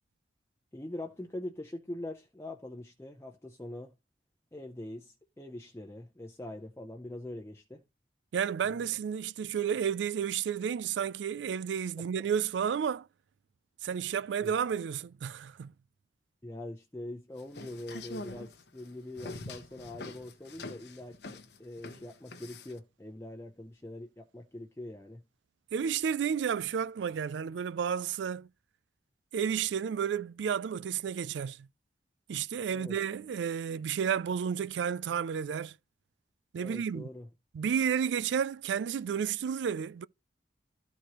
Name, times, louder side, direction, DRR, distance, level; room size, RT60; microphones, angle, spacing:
voice 1, 0.7-4.0 4.5-7.9 8.8-8.9 12.0-12.1 14.4-14.6 16.4-25.3 32.7-33.0 36.6-37.3, left 1 dB, 15° left, 0.6 m, -43 dB
voice 2, 8.3-13.1 13.8-15.7 25.7-28.5 29.3-31.7 32.3-35.7 36.5-37.1 37.5-40.1, right 7 dB, 80° right, 0.3 m, -31 dB
sound 1, 17.4-22.8, left 2 dB, 65° left, 1.0 m, -44 dB
13.0 x 4.7 x 3.0 m
head